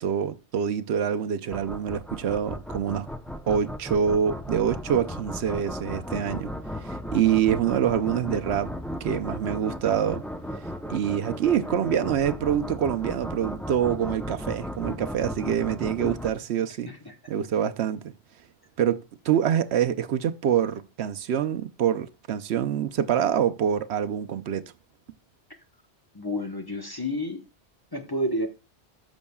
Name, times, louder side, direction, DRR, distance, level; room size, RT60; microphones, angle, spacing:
voice 1, 0.0-3.1 3.5-6.5 6.8-8.7 9.0-10.2 10.9-16.9 17.3-18.1 18.8-24.7, right 9 dB, 75° right, 0.9 m, -26 dB
sound 1, 1.5-16.3, equal, ahead, 0.4 m, -35 dB
voice 2, 16.9-17.2 26.1-27.4 27.9-28.5, left 1 dB, 20° left, 1.0 m, -30 dB
14.0 x 6.2 x 2.3 m
omnidirectional pair, 1.1 m